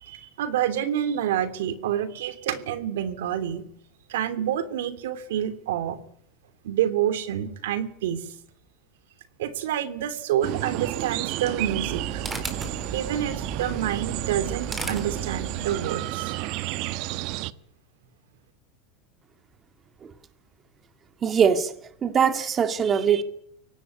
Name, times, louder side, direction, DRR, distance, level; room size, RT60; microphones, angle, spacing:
voice 1, 0.0-3.6 4.1-6.0 6.6-8.3 9.4-12.2 12.9-16.4, right 10 dB, 90° right, 3.1 m, -28 dB
sound 1, 10.4-17.5, right 16 dB, 55° right, 1.1 m, -31 dB
sound 2, 11.4-15.9, right 3 dB, 10° right, 4.4 m, -36 dB
voice 2, 21.2-21.7 22.0-23.2, right 7 dB, 25° right, 2.2 m, -21 dB
24.0 x 18.0 x 9.5 m
supercardioid pair, 140°, 0 cm